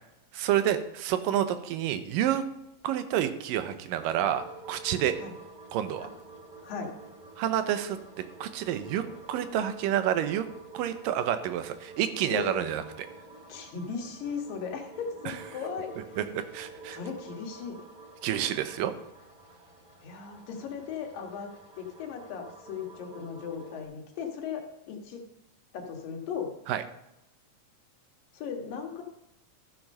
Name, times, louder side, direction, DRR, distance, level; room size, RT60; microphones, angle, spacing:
voice 1, 0.3-2.5 2.8-5.2 5.7-6.1 7.4-8.0 8.4-10.5 10.7-13.1 16.2-17.0 18.2-18.9 26.7-26.8, right 11 dB, 85° right, 10 dB, 2.5 m, -29 dB
sound 1, 4.1-23.8, right 3 dB, 15° right, 2.0 m, -49 dB
voice 2, 12.3-12.6 13.5-15.9 16.9-17.8 20.0-25.2 25.7-26.5 28.3-29.0, left 6 dB, 90° left, 2 dB, 3.3 m, -37 dB
13.5 x 6.0 x 5.4 m, 0.87 s
omnidirectional pair, 3.8 m